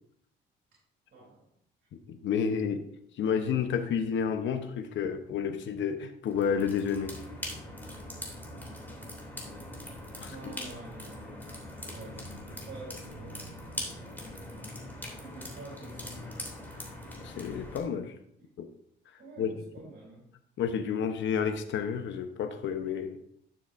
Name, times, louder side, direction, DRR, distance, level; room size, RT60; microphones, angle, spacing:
voice 1, 1.1-1.5 10.3-13.5 15.0-16.6 19.2-20.3, right 2 dB, 65° right, -4 dB, 3.6 m, -48 dB
voice 2, 2.1-2.8 3.2-7.2 10.2-10.5 17.2-18.1 18.6-18.7 19.4-19.5 20.6-23.2, left 7 dB, 70° left, 8 dB, 0.9 m, -30 dB
sound 1, 6.3-17.8, left 1 dB, 10° left, 2.8 m, -42 dB
11.5 x 6.9 x 2.6 m, 0.72 s
cardioid pair, 90°, 20 cm